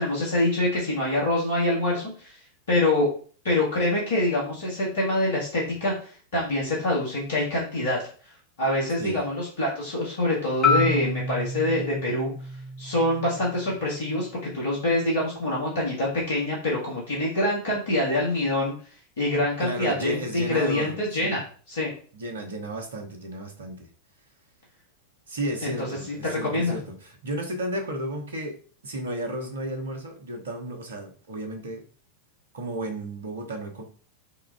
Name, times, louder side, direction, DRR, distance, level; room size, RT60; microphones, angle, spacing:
voice 1, 0.0-2.4 2.7-3.1 3.4-8.0 8.6-12.3 12.8-18.7 19.2-21.9 25.8-26.7, left 1 dB, 65° left, -5 dB, 1.6 m, -25 dB
Marimba xylophone, 10.6-14.8, left 3 dB, 20° left, 0.9 m, -29 dB
voice 2, 19.6-21.4 22.1-23.9 25.3-28.6 28.8-31.8 32.5-33.8, right 1 dB, 65° right, 4 dB, 0.9 m, -33 dB
4.7 x 2.4 x 3.4 m, 0.43 s
figure-of-eight pair, 90°, 0 cm